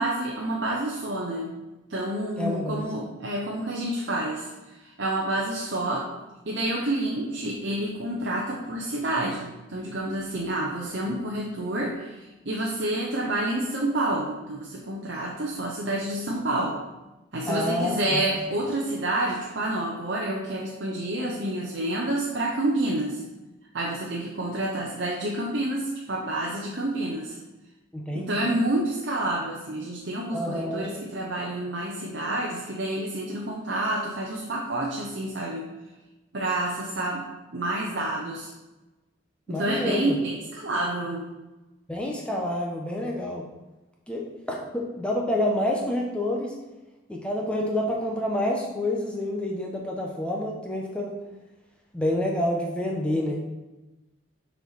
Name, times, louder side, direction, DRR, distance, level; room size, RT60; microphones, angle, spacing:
voice 1, 0.0-1.6 1.9-6.1 6.4-16.8 17.3-23.2 23.7-27.4 28.1-35.7 36.3-37.2 37.5-38.5 39.5-41.3, right 1 dB, 60° right, -3 dB, 0.8 m, -29 dB
voice 2, 2.4-2.9 17.5-18.2 27.9-28.5 30.3-30.9 39.5-40.2 41.9-43.5 44.1-44.2 44.5-46.5 47.1-51.1 51.9-53.4, left 1 dB, 5° left, -2 dB, 0.8 m, -28 dB
6.7 x 4.5 x 4.2 m, 1.1 s
head